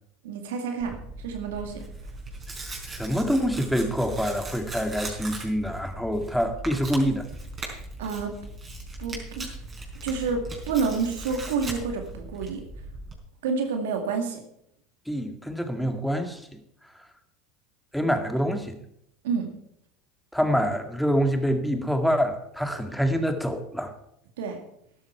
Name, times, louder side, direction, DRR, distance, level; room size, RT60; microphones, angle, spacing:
voice 1, 0.2-1.8 7.7-8.4 9.0-9.5 10.0-12.6 13.4-14.4 19.2-19.5 24.4-24.6, right 5 dB, 75° right, 4 dB, 2.1 m, -29 dB
Tearing, 0.8-13.2, right 2 dB, 25° right, 4.7 m, -39 dB
voice 2, 2.9-7.3 15.1-16.5 17.9-18.8 20.3-23.9, equal, ahead, 6 dB, 1.9 m, -26 dB
13.0 x 11.5 x 4.5 m, 0.76 s
hypercardioid pair, 85°, 0 cm